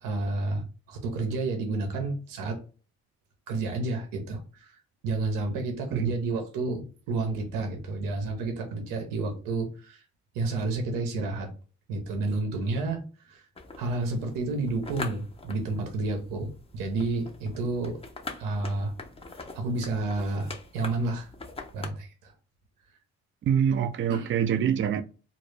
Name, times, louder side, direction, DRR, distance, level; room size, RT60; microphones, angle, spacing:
voice 1, 0.0-2.6 3.5-10.0 10.3-11.5 11.9-13.4 13.8-18.0 18.4-18.9 19.5-21.3 21.7-22.3 24.1-24.3, right 3 dB, 90° right, 0.6 m, -30 dB
sound 1, 13.6-21.9, left 3 dB, 20° left, 0.5 m, -43 dB
voice 2, 23.4-25.0, right 8 dB, 40° right, 0.4 m, -25 dB
2.0 x 2.0 x 3.1 m
supercardioid pair, 50°, 32 cm